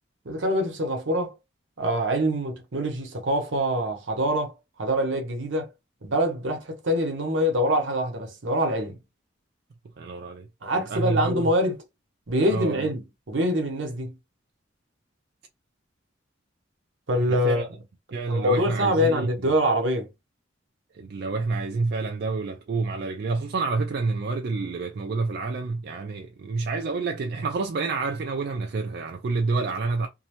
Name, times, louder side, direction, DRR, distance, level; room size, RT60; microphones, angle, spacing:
voice 1, 0.2-1.3 1.8-4.5 4.8-5.7 6.0-9.0 10.6-11.8 12.3-14.2 17.1-17.7 18.3-20.1, equal, 75° right, 0.9 m, -25 dB
voice 2, 10.0-10.5 10.9-11.5 12.5-12.9 17.1-17.7 18.1-19.3 20.9-30.1, right 3 dB, 55° right, 0.3 m, -28 dB
2.7 x 2.1 x 2.9 m
head